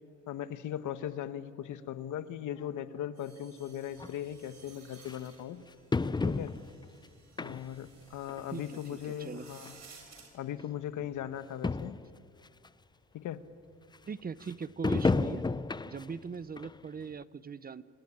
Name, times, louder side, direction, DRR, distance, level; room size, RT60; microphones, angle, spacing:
voice 1, 0.3-5.6 6.2-6.5 7.4-9.8 10.3-11.9 13.1-13.4, left 10 dB, 80° left, 12 dB, 1.3 m, -38 dB
sound 1, 3.2-10.3, right 5 dB, 60° right, 6.1 m, -57 dB
sound 2, 4.0-4.1 5.1-5.2 5.9-6.8 7.4-7.9 8.3-8.4 9.4-9.5 9.7-9.8 10.6-10.7 11.0-11.1 11.3-11.4 11.6-12.1 12.6-12.7 14.8-16.2 16.6-16.7 17.2-17.3, left 3 dB, 15° left, 0.5 m, -31 dB
voice 2, 14.0-15.4 15.9-17.8, right 5 dB, 30° right, 17 dB, 0.7 m, -40 dB
25.0 x 18.5 x 10.0 m, 2.3 s
cardioid pair, 90°, 30 cm